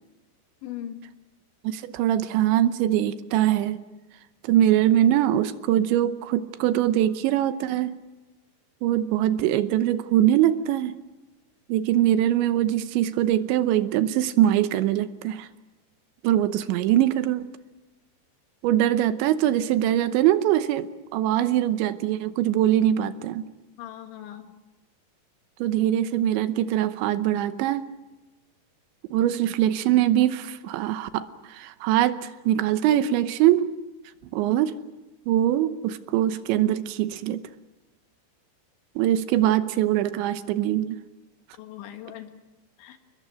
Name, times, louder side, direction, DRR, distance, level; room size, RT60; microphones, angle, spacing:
voice 1, 0.6-1.0 23.8-24.5 41.6-42.3 42.8-43.0, left 11 dB, 80° left, 6 dB, 3.9 m, -39 dB
voice 2, 1.6-3.8 4.4-8.0 8.8-11.0 11.7-15.5 16.2-17.5 18.6-23.4 25.6-27.9 29.1-33.7 34.3-34.8 35.3-37.5 39.0-41.0, right 12 dB, 80° right, 11 dB, 3.2 m, -22 dB
29.0 x 21.0 x 6.3 m, 1.1 s
omnidirectional pair, 5.3 m